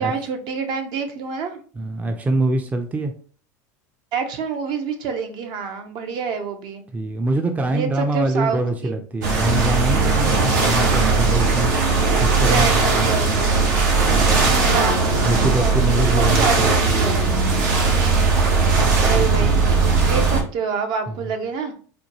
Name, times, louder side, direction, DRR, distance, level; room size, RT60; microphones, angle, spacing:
voice 1, 0.0-1.6 4.1-6.8 7.7-8.9 12.4-13.7 14.6-17.2 17.8-18.4 19.0-21.7, right 5 dB, 55° right, 6 dB, 0.7 m, -27 dB
voice 2, 1.8-3.1 6.9-11.7 12.2-13.4 14.1-14.5 15.2-17.2 18.7-19.5 21.2-21.3, right 2 dB, 15° right, 5 dB, 0.4 m, -24 dB
sound 1, 9.2-20.4, right 4 dB, 80° right, 1.1 m, -18 dB
4.3 x 2.2 x 2.9 m, 0.43 s
supercardioid pair, 105°, 10 cm